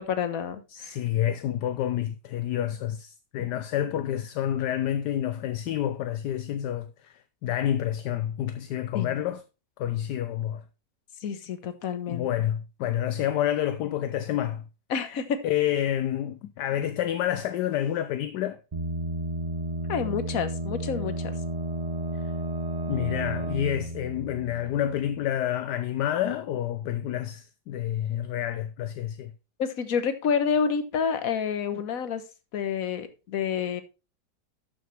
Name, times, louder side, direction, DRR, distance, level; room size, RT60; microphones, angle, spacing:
voice 1, 0.0-1.0 3.4-3.5 8.9-9.2 11.2-12.3 14.9-15.4 19.9-21.4 29.6-32.2 32.5-33.8, left 6 dB, 55° left, 1.5 m, -29 dB
voice 2, 0.7-9.4 9.8-10.6 12.1-14.7 15.0-15.1 15.4-18.6 22.1-22.2 22.9-29.3, left 11 dB, 75° left, 1.2 m, -29 dB
sound 1, 18.7-25.3, right 1 dB, 30° right, 0.8 m, -32 dB
12.0 x 6.3 x 3.3 m
omnidirectional pair, 1.9 m